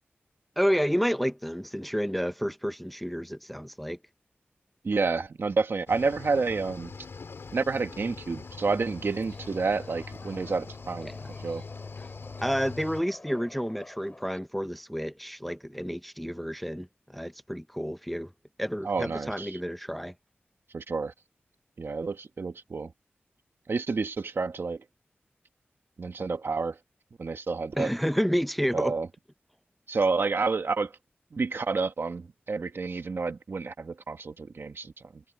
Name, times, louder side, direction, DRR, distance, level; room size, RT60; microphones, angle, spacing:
voice 1, 0.6-4.0 11.0-11.3 12.4-18.3 18.6-20.1 27.7-28.9, equal, ahead, 0.6 m, -30 dB
voice 2, 4.8-6.9 7.5-11.1 11.4-11.6 18.8-19.6 20.7-21.1 21.8-22.9 23.7-24.8 26.0-26.8 27.2-27.9 28.7-29.1 29.9-30.9 31.3-35.2, right 4 dB, 65° right, 1.3 m, -29 dB
Cricket / Waves surf, 5.9-13.0, left 4 dB, 80° left, 2.1 m, -42 dB
Subway metro underground, 8.4-14.4, left 2 dB, 30° left, 7.5 m, -50 dB
wide cardioid pair, 105°, 4 cm